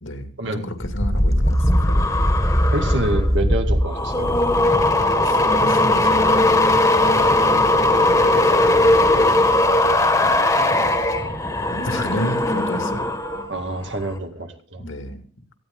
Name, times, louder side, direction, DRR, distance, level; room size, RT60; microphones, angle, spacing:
voice 1, 0.0-2.2 5.2-7.1 7.8-9.4 9.9-10.4 11.7-13.1 14.8-15.2, left 1 dB, 70° left, 6 dB, 2.3 m, -32 dB
sound 1, 0.8-13.5 13.8-14.2, left 1 dB, 15° left, 1.8 m, -18 dB
voice 2, 2.7-4.3 13.5-14.8, right 1 dB, 60° right, 5 dB, 2.1 m, -27 dB
18.5 x 15.0 x 3.9 m, 0.43 s
head